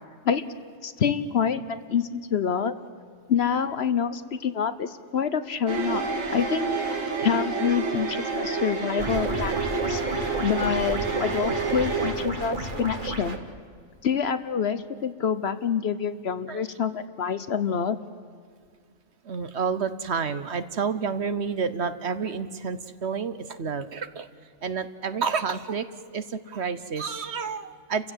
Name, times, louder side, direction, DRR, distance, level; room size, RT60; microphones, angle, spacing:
voice 1, 0.8-2.8 3.3-6.0 6.3-9.5 9.9-13.4 14.0-18.0, left 7 dB, 55° left, 13 dB, 1.0 m, -27 dB
sound 1, 5.7-12.1, right 4 dB, 70° right, 2.6 m, -29 dB
sound 2, 9.0-13.4, right 2 dB, 35° right, 1.8 m, -32 dB
voice 2, 19.2-24.3 24.6-25.9 26.1-28.1, right 5 dB, 55° right, 12 dB, 1.1 m, -29 dB
30.0 x 16.0 x 8.0 m, 2.1 s
omnidirectional pair, 1.4 m